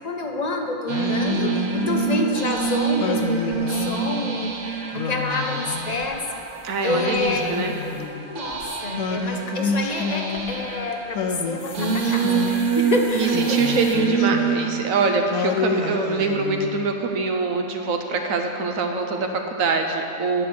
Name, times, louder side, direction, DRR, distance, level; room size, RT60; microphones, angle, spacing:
voice 1, 0.0-4.6 4.9-6.3 6.8-7.4 8.3-13.6, left 2 dB, 40° left, 3 dB, 0.6 m, -28 dB
Singing, 0.9-2.4 3.0-4.3 4.9-6.3 6.9-8.4 9.0-10.8 11.2-12.8 13.3-14.9 15.3-16.9, left 5 dB, 90° left, 1.1 m, -29 dB
sound 1, 0.9-14.6, right 7 dB, 45° right, 0.8 m, -27 dB
sound 2, 2.5-3.6 5.9-8.0 8.5-8.7 10.1-10.5 11.6-14.0, left 2 dB, 65° left, 2.1 m, -45 dB
voice 2, 6.6-7.7 13.1-20.5, right 4 dB, 75° right, 4 dB, 1.1 m, -24 dB
9.3 x 5.9 x 7.7 m, 2.9 s
omnidirectional pair, 1.5 m